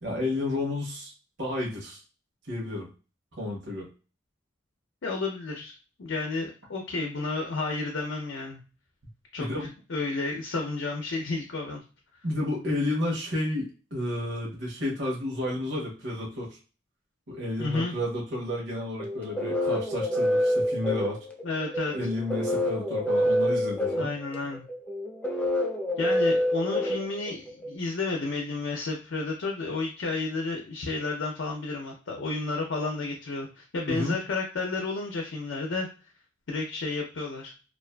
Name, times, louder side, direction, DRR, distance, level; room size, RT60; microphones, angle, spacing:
voice 1, 0.0-1.1 1.4-2.0 2.5-2.9 3.4-3.9 9.4-9.7 12.2-16.6 17.3-21.2 21.9-24.1 33.9-34.2, left 1 dB, 65° right, -2 dB, 0.9 m, -31 dB
voice 2, 5.0-5.7 6.0-8.6 9.3-9.5 9.9-11.8 17.6-17.9 21.4-22.0 24.0-24.6 26.0-35.9 36.5-37.5, left 3 dB, 80° left, 1 dB, 0.5 m, -31 dB
sound 1, 19.0-27.7, left 1 dB, 10° left, 0.4 m, -27 dB
2.4 x 2.4 x 2.2 m, 0.34 s
head